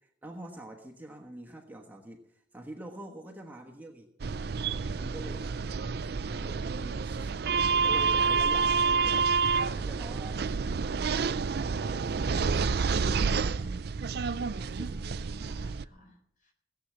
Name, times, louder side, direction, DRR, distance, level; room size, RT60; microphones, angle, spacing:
voice 1, 0.2-4.1 4.9-5.6 6.3-9.2 9.7-10.4 11.7-13.9 14.7-15.0, right 1 dB, 10° right, 1 dB, 1.2 m, -45 dB
sound 1, 4.2-15.8, right 5 dB, 60° right, 0.5 m, -29 dB
voice 2, 15.1-16.5, equal, 45° left, 3 dB, 4.2 m, -58 dB
17.0 x 7.9 x 7.3 m, 0.71 s
head